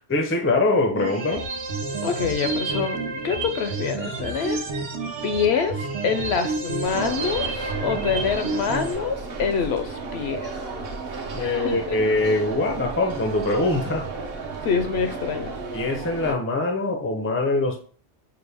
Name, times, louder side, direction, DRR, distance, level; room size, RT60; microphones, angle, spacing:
voice 1, 0.1-1.4 11.3-14.1 15.7-17.8, left 2 dB, 20° left, 4 dB, 0.4 m, -23 dB
sound 1, 0.9-8.9, right 3 dB, 85° right, 1.1 m, -29 dB
voice 2, 2.0-4.6 5.2-10.5 11.4-12.0 14.6-15.5, left 6 dB, 70° left, 8 dB, 0.8 m, -26 dB
sound 2, 6.8-16.3, right 3 dB, 60° right, 0.9 m, -33 dB
5.8 x 2.1 x 3.4 m, 0.42 s
omnidirectional pair, 1.2 m